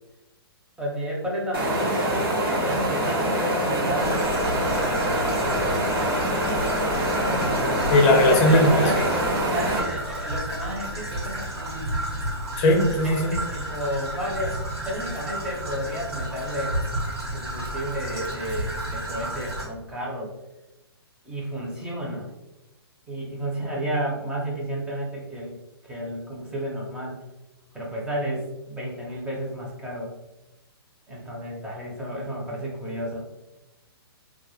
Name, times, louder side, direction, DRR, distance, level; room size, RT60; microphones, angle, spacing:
voice 1, 0.8-5.0 7.1-8.1 8.4-9.2 9.5-12.0 13.0-14.6 14.8-16.8 17.3-20.3 21.2-22.3 23.1-25.6 25.8-27.2 27.7-30.1 31.1-33.3, equal, 5° right, -4 dB, 0.6 m, -32 dB
sound 1, 1.5-9.8, right 1 dB, 60° right, 0.7 m, -25 dB
Traffic noise roadway noise / Trickle dribble, 4.0-19.7, right 1 dB, 75° right, 1.1 m, -32 dB
voice 2, 7.9-9.0 12.6-13.3, left 1 dB, 35° left, 1 dB, 0.6 m, -18 dB
2.3 x 2.0 x 3.0 m, 0.98 s
hypercardioid pair, 135°, 13 cm